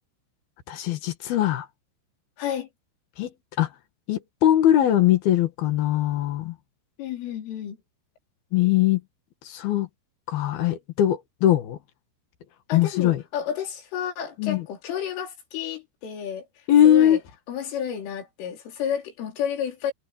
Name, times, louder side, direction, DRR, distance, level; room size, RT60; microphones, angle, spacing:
voice 1, 0.7-1.7 3.2-3.3 3.6-3.7 4.1-6.5 8.5-9.0 9.4-9.9 10.3-11.8 12.7-13.2 14.4-14.6 16.7-17.2, left 12 dB, 60° left, 3.2 m, -21 dB
voice 2, 2.4-2.7 7.0-7.8 12.7-16.4 16.8-17.2 17.5-19.9, left 8 dB, 75° left, 6.3 m, -31 dB
omnidirectional pair, 5.8 m